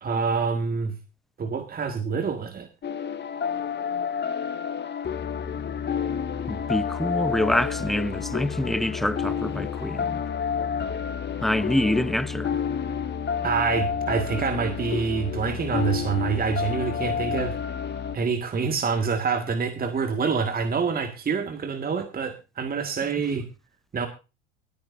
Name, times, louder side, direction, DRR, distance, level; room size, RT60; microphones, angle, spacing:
voice 1, 0.0-1.0 1.4-2.7 13.4-17.5 18.1-23.5 23.9-24.1, right 5 dB, 25° right, 1.9 m, -26 dB
sound 1, 2.8-18.2, left 7 dB, 30° left, 1.9 m, -29 dB
voice 2, 6.5-10.2 11.4-12.6, left 1 dB, ahead, 0.6 m, -26 dB
23.5 x 9.6 x 2.6 m
hypercardioid pair, 75°, 36 cm